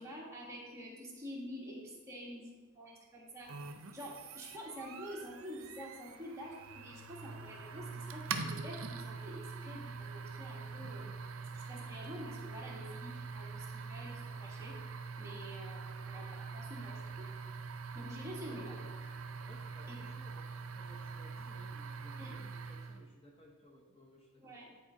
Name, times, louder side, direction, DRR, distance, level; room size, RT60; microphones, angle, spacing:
voice 1, 0.0-2.5 2.7-3.5 3.9-11.0 11.5-14.7 15.2-17.3 17.9-18.8 19.9-20.0 22.2-22.3 24.4-24.7, equal, 15° right, -4 dB, 1.4 m, -48 dB
sound 1, 3.5-23.0, right 4 dB, 70° right, 0.6 m, -44 dB
voice 2, 18.4-19.1 19.4-24.8, equal, 25° left, 0 dB, 0.7 m, -59 dB
9.8 x 4.6 x 3.9 m, 1.3 s
head